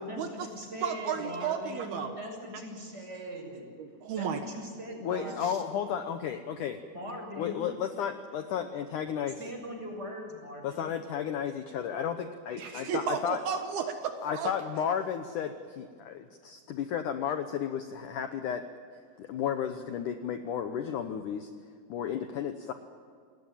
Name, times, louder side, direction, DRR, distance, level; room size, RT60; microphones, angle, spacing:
voice 1, 0.0-3.7 4.2-5.6 6.9-7.7 9.4-10.9, equal, 15° right, 2 dB, 6.1 m, -41 dB
voice 2, 0.8-2.2 3.8-4.4 5.2-5.5 12.6-14.5, right 7 dB, 70° right, 5 dB, 3.0 m, -33 dB
voice 3, 5.0-6.8 7.4-9.4 10.6-13.4 14.2-18.6 19.2-21.5 21.9-22.7, left 8 dB, 80° left, 8 dB, 1.8 m, -33 dB
28.5 x 19.5 x 9.0 m, 2.2 s
omnidirectional pair, 5.1 m